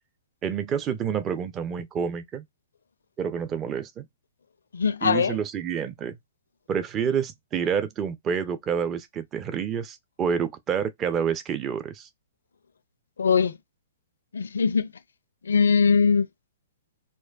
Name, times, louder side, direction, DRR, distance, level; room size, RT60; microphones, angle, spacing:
voice 1, 0.4-2.4 3.2-4.1 5.0-6.1 6.7-12.1, right 7 dB, 20° right, 0.5 m, -28 dB
voice 2, 4.7-5.4 13.2-13.6 14.3-14.9 15.4-16.3, left 5 dB, 65° left, 0.4 m, -21 dB
4.3 x 2.2 x 2.3 m
figure-of-eight pair, 115°, 0 cm